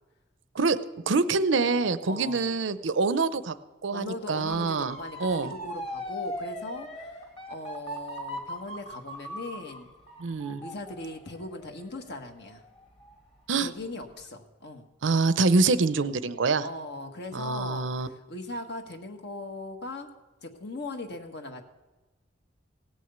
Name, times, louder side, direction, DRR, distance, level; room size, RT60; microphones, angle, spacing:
voice 1, 1.1-3.5 3.8-5.5 10.2-10.6 13.5-13.7 15.0-16.6 17.3-18.1, right 4 dB, 90° right, 13 dB, 0.7 m, -25 dB
voice 2, 2.0-2.4 3.9-7.2 7.5-9.9 10.6-12.6 13.6-14.9 16.6-20.1 20.4-21.6, left 2 dB, 65° left, 5 dB, 1.5 m, -39 dB
Motor vehicle (road) / Siren, 4.4-13.4 13.8-14.2, equal, 30° left, 1.9 m, -40 dB
17.5 x 6.3 x 8.1 m, 1.2 s
head